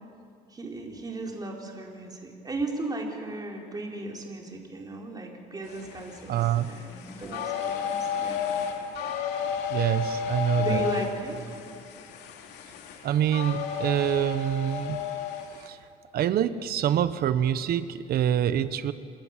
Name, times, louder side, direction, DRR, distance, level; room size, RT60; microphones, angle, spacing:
voice 1, 0.5-6.3 6.6-8.5 10.6-11.5, right 2 dB, 25° right, 0 dB, 4.5 m, -35 dB
sound 1, 5.6-15.7, left 7 dB, 85° left, 2.9 m, -33 dB
voice 2, 6.3-6.7 9.7-10.8 13.0-15.0 15.6-15.8 16.1-18.9, right 10 dB, 65° right, 13 dB, 1.2 m, -26 dB
27.5 x 21.0 x 7.5 m, 2.4 s
cardioid pair, 110°, 17 cm